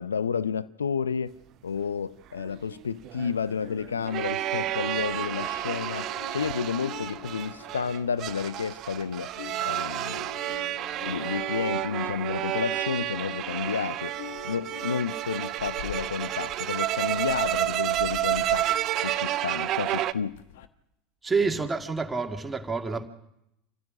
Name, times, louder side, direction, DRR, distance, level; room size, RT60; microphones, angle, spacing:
voice 1, 0.0-1.3 1.6-9.3 9.6-10.3 11.1-14.1 14.4-18.7 19.0-20.4 21.4-21.7, left 6 dB, 80° left, 0.6 m, -31 dB
sound 1, 2.4-20.1, right 14 dB, 45° right, 0.7 m, -30 dB
sound 2, 3.6-9.0 9.2-20.7, left 13 dB, 65° left, 1.1 m, -45 dB
voice 2, 21.2-23.0, right 4 dB, 15° right, 2.1 m, -28 dB
26.5 x 15.0 x 6.4 m
figure-of-eight pair, 75°, 0 cm